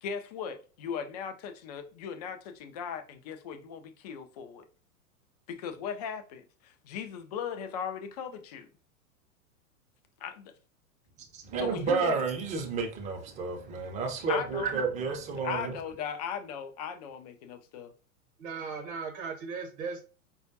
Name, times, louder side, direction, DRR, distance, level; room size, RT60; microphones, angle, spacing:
voice 1, 0.0-4.6 5.5-8.7 10.2-10.5 11.6-12.1 14.3-14.7 15.3-17.9, left 7 dB, 30° left, 0.4 m, -38 dB
voice 2, 11.3-15.7, right 4 dB, 15° right, 0.6 m, -31 dB
voice 3, 18.4-20.0, right 5 dB, 40° right, 0.9 m, -37 dB
4.8 x 2.3 x 2.7 m
figure-of-eight pair, 100°, 42 cm